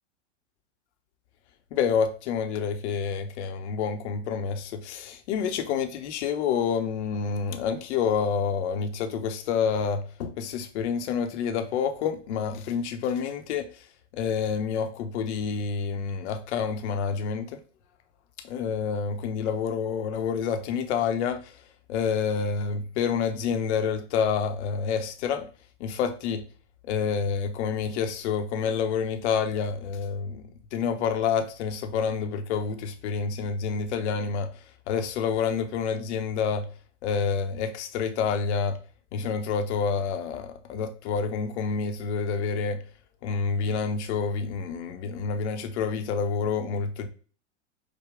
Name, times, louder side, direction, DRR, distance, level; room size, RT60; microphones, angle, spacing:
voice 1, 1.7-13.7 14.1-17.6 18.4-21.5 21.9-25.5 25.8-26.4 26.9-30.4 30.7-34.5 34.9-36.7 37.0-38.8 39.1-42.8 43.2-47.1, left 6 dB, 65° left, 0.8 m, -28 dB
5.0 x 2.2 x 3.4 m
hypercardioid pair, 115°, 36 cm